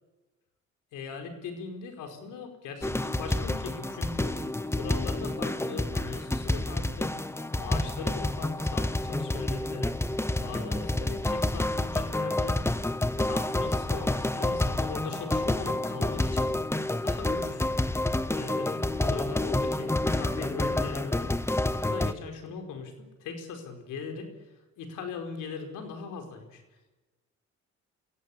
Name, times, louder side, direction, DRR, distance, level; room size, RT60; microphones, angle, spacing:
voice 1, 0.9-4.4 4.8-7.2 7.6-12.6 13.2-16.6 17.0-17.7 18.3-24.3 24.8-26.6, left 5 dB, 90° left, 5 dB, 4.9 m, -40 dB
sound 1, 2.8-22.1, left 1 dB, 10° left, 1.0 m, -29 dB
22.0 x 17.0 x 8.7 m, 1.1 s
cardioid pair, 90°, 30 cm